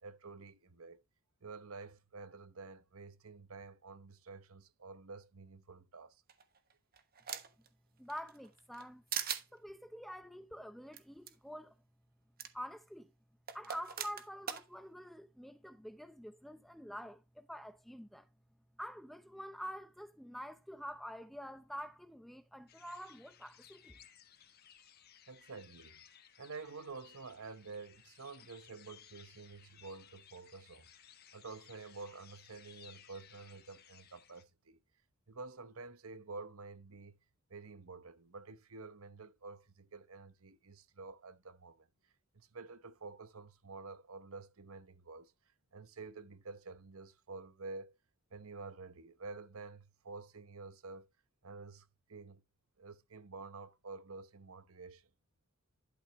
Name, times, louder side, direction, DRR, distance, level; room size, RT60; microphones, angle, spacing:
voice 1, 0.0-1.0 1.4-6.2 25.3-26.1 26.4-30.9 31.3-34.8 35.3-37.2 37.5-41.9 42.3-45.3 45.7-48.0 48.3-51.1 51.4-52.4 52.8-55.1, right 3 dB, 90° right, 1.0 m, -49 dB
sound 1, 6.3-7.7 8.1-8.8 9.1-9.4 10.9-11.0 11.3-11.4 12.4-12.5 13.5-14.6, right 9 dB, 45° right, 1.1 m, -40 dB
voice 2, 8.0-9.0 9.5-11.7 12.5-13.1 13.5-18.3 18.8-24.0, equal, ahead, 0.6 m, -47 dB
sound 2, 22.7-34.4, left 9 dB, 45° left, 1.2 m, -60 dB
11.5 x 6.7 x 3.0 m
head